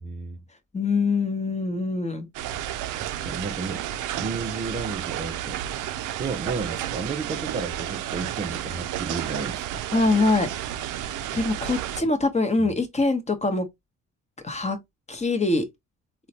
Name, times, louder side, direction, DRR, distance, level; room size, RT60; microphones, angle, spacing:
voice 1, 0.0-0.4 3.0-3.9 4.2-5.6 6.2-9.9 12.0-12.1 12.6-12.7, right 4 dB, 25° right, 0.4 m, -33 dB
voice 2, 0.7-2.3 9.9-10.5 11.3-13.6 14.4-14.8 15.1-15.6, left 3 dB, 20° left, 0.9 m, -23 dB
sound 1, 2.3-12.0, right 11 dB, 85° right, 0.5 m, -31 dB
3.7 x 2.2 x 2.8 m
cardioid pair, 90°, 30 cm